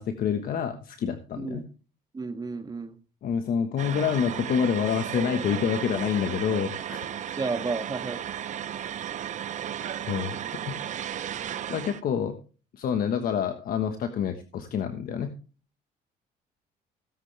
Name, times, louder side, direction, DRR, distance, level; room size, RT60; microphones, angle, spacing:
voice 1, 0.0-1.6 3.2-7.1 10.1-10.4 10.6-10.7 11.7-12.3 12.7-15.3, left 7 dB, 60° left, 7 dB, 1.3 m, -27 dB
voice 2, 2.1-3.0 7.4-8.2, right 4 dB, 25° right, 7 dB, 1.7 m, -32 dB
sound 1, 3.8-12.0, right 10 dB, 45° right, 0.7 m, -34 dB
17.0 x 8.0 x 3.3 m, 0.35 s
cardioid pair, 110°, 17 cm